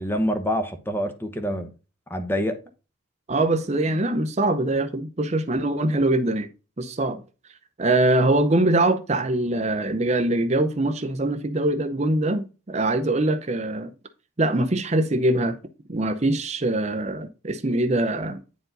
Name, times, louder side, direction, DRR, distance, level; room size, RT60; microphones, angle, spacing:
voice 1, 0.0-1.7 2.1-2.6, equal, 10° left, 0.9 m, -26 dB
voice 2, 3.3-6.5 6.8-7.2 7.8-13.9 14.4-15.6 15.9-18.4, right 2 dB, 35° right, 0.7 m, -23 dB
9.4 x 4.6 x 3.9 m
head